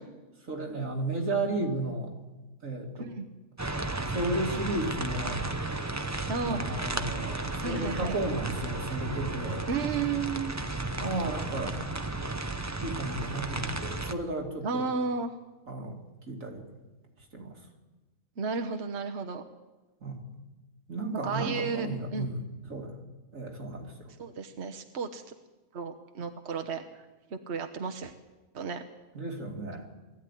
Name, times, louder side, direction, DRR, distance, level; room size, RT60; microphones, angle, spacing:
voice 1, 0.4-2.1 2.6-3.1 4.1-5.4 6.4-9.6 11.0-11.8 12.8-14.9 15.7-16.0 16.3-16.7 17.3-17.5 20.0-20.3 20.9-23.0 23.3-24.1 29.1-29.9, right 2 dB, 85° right, 1 dB, 3.0 m, -33 dB
sound 1, 3.6-14.1, right 2 dB, 15° right, 0.8 m, -34 dB
voice 2, 6.3-6.6 7.6-8.1 9.7-10.6 14.6-15.3 18.4-19.4 21.2-22.3 24.2-25.2 25.7-26.8 27.3-28.1 28.5-28.8, right 5 dB, 60° right, 5 dB, 1.3 m, -33 dB
20.5 x 14.5 x 10.0 m, 1.2 s
omnidirectional pair, 1.3 m